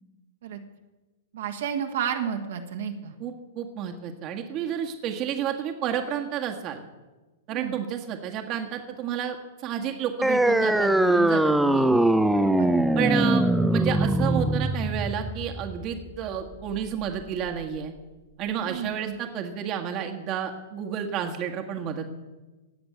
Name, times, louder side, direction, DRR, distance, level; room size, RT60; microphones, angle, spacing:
voice 1, 1.3-3.1 7.5-7.9 12.3-12.7 18.6-19.2, right 8 dB, 60° right, 4 dB, 1.9 m, -32 dB
voice 2, 3.2-6.8 7.5-11.9 12.9-17.9 18.4-22.1, right 8 dB, 35° right, 3 dB, 1.7 m, -31 dB
sound 1, 10.2-17.2, right 1 dB, 5° right, 0.8 m, -22 dB
18.5 x 7.9 x 8.3 m, 1.2 s
figure-of-eight pair, 105°, 0 cm